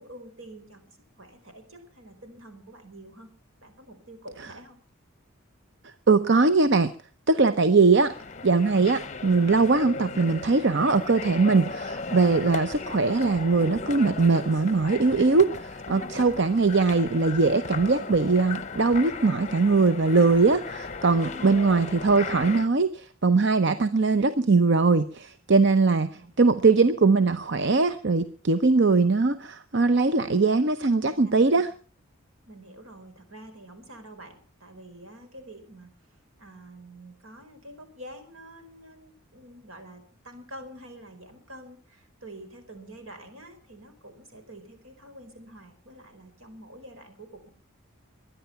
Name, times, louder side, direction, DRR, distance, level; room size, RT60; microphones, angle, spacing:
voice 1, 0.0-3.3 3.6-4.8 15.9-16.2 21.2-21.6 26.1-26.3 30.9-31.1 31.5-31.6 32.5-35.9 36.4-47.5, right 1 dB, 75° right, 6 dB, 4.8 m, -47 dB
voice 2, 6.1-6.9 7.3-8.1 8.4-26.1 26.4-31.7, right 3 dB, 55° right, 12 dB, 0.7 m, -21 dB
sound 1, 8.0-22.7, left 4 dB, 35° left, 0.7 m, -36 dB
23.0 x 10.0 x 5.8 m, 0.41 s
head